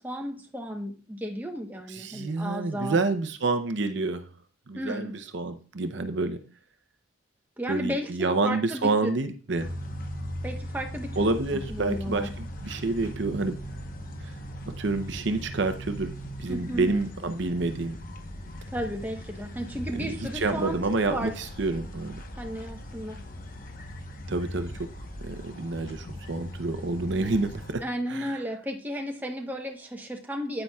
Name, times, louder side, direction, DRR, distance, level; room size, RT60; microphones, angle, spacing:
voice 1, 0.0-3.0 4.8-5.2 7.6-9.1 10.4-11.2 11.7-12.3 16.5-16.9 18.7-21.3 22.4-23.2 27.8-30.6, equal, 10° right, 2 dB, 0.9 m, -34 dB
voice 2, 1.9-4.3 4.7-6.4 7.7-9.7 11.2-13.5 14.8-16.1 16.4-18.0 20.0-20.1 20.4-22.2 24.3-24.7 25.2-27.8 28.1-28.4, right 3 dB, 60° right, 9 dB, 0.7 m, -28 dB
sound 1, 9.6-27.7, equal, 45° left, 1.0 m, -39 dB
9.5 x 8.9 x 2.3 m, 0.38 s
head